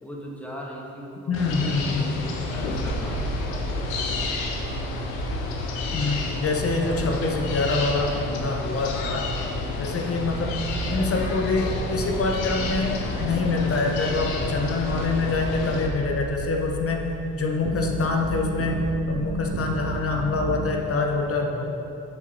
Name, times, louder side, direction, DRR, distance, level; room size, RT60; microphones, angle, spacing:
voice 1, 0.0-4.7 9.5-10.0, equal, 5° left, -3 dB, 1.4 m, -40 dB
sound 1, 1.3-15.9, left 3 dB, 75° left, 0.8 m, -30 dB
voice 2, 1.3-2.2 5.9-9.3 9.8-10.5 10.9-17.0 17.4-21.7, left 3 dB, 35° left, 1 dB, 0.9 m, -25 dB
sound 2, 2.8-20.8, right 3 dB, 45° right, 0.6 m, -34 dB
8.3 x 7.4 x 2.7 m, 2.9 s
figure-of-eight pair, 40°, 41 cm